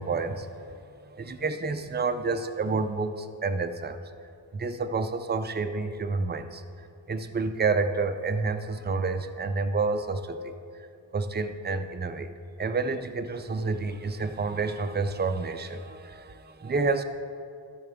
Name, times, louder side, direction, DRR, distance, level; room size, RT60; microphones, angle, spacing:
voice 1, 0.0-4.0 4.5-10.5 11.1-12.3 12.6-17.0, right 4 dB, 25° right, 8 dB, 0.3 m, -29 dB
12.5 x 6.7 x 3.5 m, 2.4 s
wide cardioid pair, 145°, 49 cm